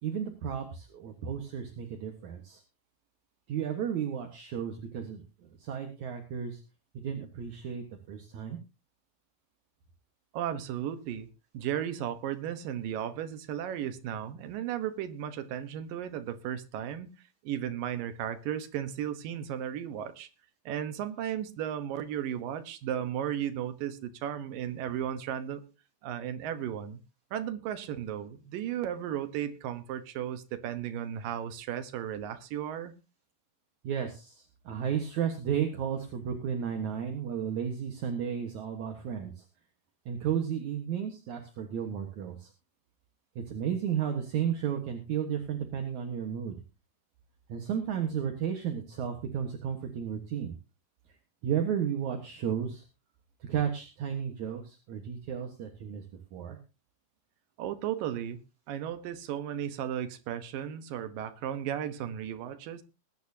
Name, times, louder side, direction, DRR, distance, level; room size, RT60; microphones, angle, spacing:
voice 1, 0.0-2.6 3.5-5.2 5.6-6.6 6.9-8.6 33.8-39.3 40.1-42.5 43.4-46.6 47.5-50.5 51.4-52.8 53.5-56.0 56.3-56.6, right 8 dB, 65° right, 4 dB, 2.7 m, -33 dB
voice 2, 10.3-11.3 11.5-17.1 17.4-20.3 20.7-25.6 26.0-27.0 27.3-32.9 57.6-58.4 58.7-62.8, right 10 dB, 80° right, 10 dB, 2.9 m, -35 dB
21.0 x 11.0 x 2.8 m, 0.30 s
omnidirectional pair, 3.9 m